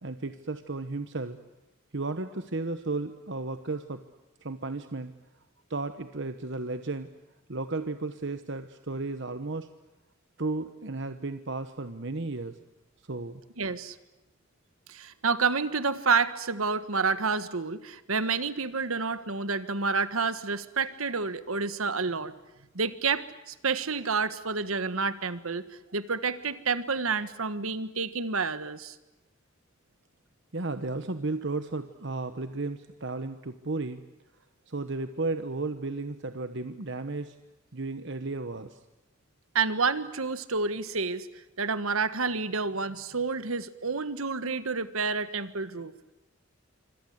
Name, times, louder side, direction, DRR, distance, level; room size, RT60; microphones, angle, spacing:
voice 1, 0.0-1.4 1.9-4.0 4.4-5.1 5.7-7.1 7.5-9.7 10.4-12.6 13.1-13.4 30.5-34.0 34.7-37.3 37.7-38.8, right 3 dB, 55° right, 9 dB, 1.1 m, -34 dB
voice 2, 13.6-14.0 14.9-22.3 22.7-25.7 25.9-29.0 39.5-41.3 41.6-45.9, right 4 dB, 80° right, 13 dB, 1.5 m, -29 dB
26.5 x 25.5 x 8.0 m, 1.0 s
head